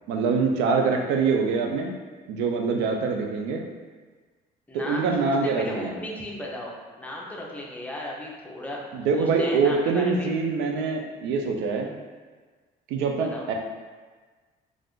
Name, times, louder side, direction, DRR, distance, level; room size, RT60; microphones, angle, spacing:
voice 1, 0.1-1.9 2.3-3.6 4.7-6.0 8.9-11.9 12.9-13.5, right 4 dB, 90° right, 2 dB, 0.4 m, -24 dB
voice 2, 4.7-8.8 9.1-10.3 13.2-13.5, left 1 dB, 10° left, -3 dB, 0.6 m, -35 dB
2.5 x 2.4 x 3.5 m, 1.4 s
cardioid pair, 110°, 17 cm